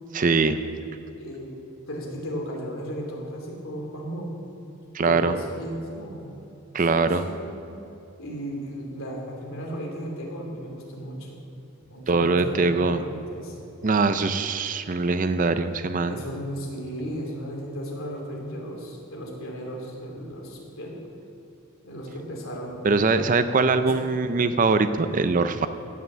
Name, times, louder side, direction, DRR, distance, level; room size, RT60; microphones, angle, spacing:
voice 1, 0.1-0.6 4.9-5.3 6.7-7.2 12.1-13.0 13.8-16.2 22.8-25.7, right 3 dB, 35° right, 10 dB, 0.4 m, -22 dB
voice 2, 1.2-1.5 1.9-4.3 5.0-6.3 6.8-7.5 8.2-11.4 11.8-13.6 16.1-21.0 21.8-22.9 23.8-24.6, equal, 65° left, -1 dB, 2.9 m, -35 dB
16.5 x 5.9 x 7.4 m, 2.9 s
head